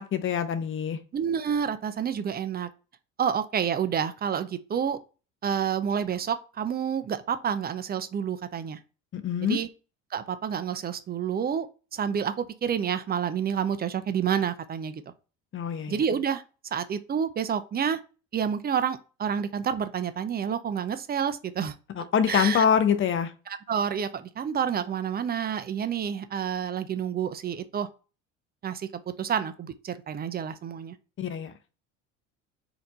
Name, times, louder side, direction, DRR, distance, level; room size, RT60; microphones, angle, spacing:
voice 1, 0.0-1.0 9.1-9.6 15.5-16.0 22.0-23.3 31.2-31.5, left 7 dB, 35° left, 0.8 m, -25 dB
voice 2, 1.1-2.7 3.2-5.0 5.4-8.8 9.4-9.7 10.1-11.7 11.9-15.0 15.9-16.4 16.7-18.0 18.3-21.7 22.3-22.6 23.5-27.9 28.6-28.9 29.2-31.0, right 8 dB, 25° right, 0.5 m, -29 dB
4.2 x 2.9 x 3.9 m
hypercardioid pair, 75°, 38 cm